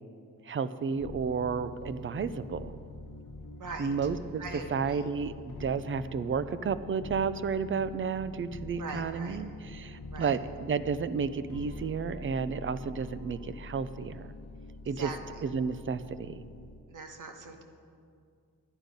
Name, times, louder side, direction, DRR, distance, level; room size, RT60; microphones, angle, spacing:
voice 1, 0.4-2.8 3.8-4.4 4.7-14.3 14.9-15.1 15.4-16.4, right 6 dB, 40° right, 13 dB, 0.4 m, -32 dB
sound 1, 0.9-16.8, left 2 dB, 85° left, 1.1 m, -45 dB
voice 2, 3.6-3.9 4.4-5.1 8.8-9.4 10.1-10.4 14.9-15.4 16.9-17.6, right 4 dB, 70° right, 4 dB, 1.2 m, -41 dB
11.5 x 9.8 x 5.2 m, 2.3 s
wide cardioid pair, 165°, 32 cm